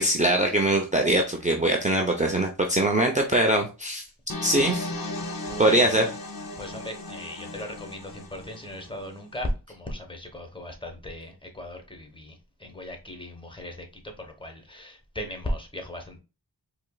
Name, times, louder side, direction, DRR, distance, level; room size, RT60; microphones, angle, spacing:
voice 1, 0.0-4.0 4.4-4.9 5.6-6.1, right 1 dB, 20° right, 2 dB, 0.6 m, -22 dB
sound 1, 4.3-9.2, left 2 dB, 55° left, 0.8 m, -36 dB
voice 2, 5.5-6.0 6.6-16.2, left 1 dB, 10° left, 3 dB, 1.1 m, -37 dB
4.3 x 2.9 x 2.3 m, 0.30 s
wide cardioid pair, 55°, 41 cm